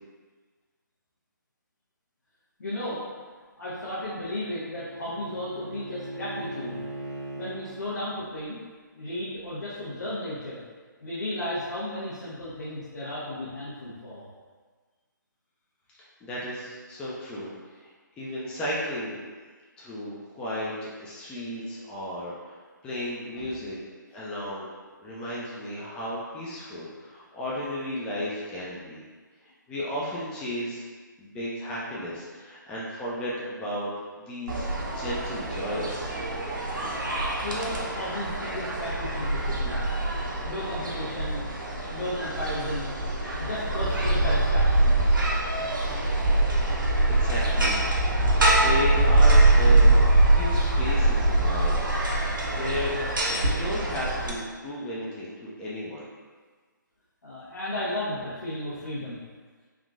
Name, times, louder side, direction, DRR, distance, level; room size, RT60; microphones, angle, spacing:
voice 1, 2.6-3.0 3.6-6.8 7.3-8.6 8.9-10.6 11.0-14.2 23.3-23.5 37.4-39.7 40.4-41.5 41.9-42.9 43.4-45.0 57.2-59.2, left 1 dB, 65° left, -11 dB, 1.0 m, -34 dB
Bowed string instrument, 3.9-7.7, right 1 dB, 85° left, 1.2 m, -39 dB
voice 2, 16.0-17.9 18.2-19.2 19.8-23.8 24.1-24.7 25.0-29.0 29.7-30.8 31.2-34.7 34.9-36.1 46.5-46.7 47.1-47.8 48.5-51.9 52.5-52.9 53.4-56.1, left 1 dB, 10° left, -7 dB, 0.3 m, -34 dB
sound 1, 34.5-54.3, right 2 dB, 80° right, 0.7 m, -23 dB
3.6 x 2.4 x 2.5 m, 1.5 s
figure-of-eight pair, 145°, 11 cm